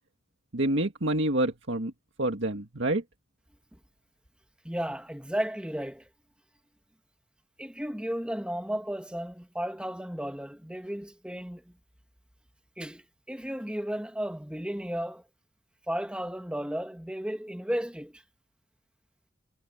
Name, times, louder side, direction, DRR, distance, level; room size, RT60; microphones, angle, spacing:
voice 1, 0.5-1.9 2.2-3.0, right 1 dB, 85° right, 2.0 m, -27 dB
voice 2, 4.6-6.1 7.6-11.7 12.8-15.2 15.9-18.2, equal, 5° right, 1.4 m, -34 dB
head